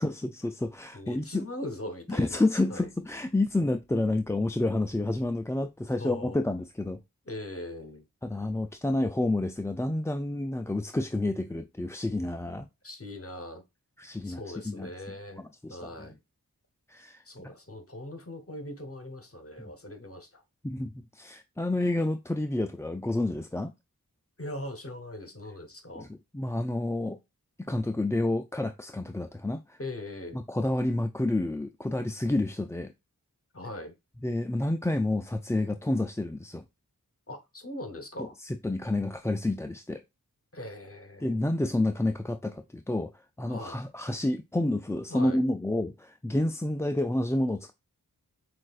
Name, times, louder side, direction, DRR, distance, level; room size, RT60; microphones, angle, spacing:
voice 1, 0.0-1.5 2.1-7.0 8.2-12.7 14.0-14.9 15.4-16.1 16.9-17.2 20.6-23.7 25.9-27.2 27.6-29.8 30.3-32.9 34.2-36.6 38.2-40.0 41.2-47.7, left 2 dB, 10° left, 0.3 m, -29 dB
voice 2, 0.9-2.9 6.0-6.4 7.3-8.0 12.8-13.6 14.2-15.4 15.7-16.2 17.2-20.4 24.4-26.1 29.8-30.4 33.5-33.9 37.3-38.4 40.5-41.5 43.5-43.8 45.1-45.4, left 1 dB, 40° left, 1.1 m, -40 dB
6.0 x 2.5 x 2.4 m
wide cardioid pair, 40°, 36 cm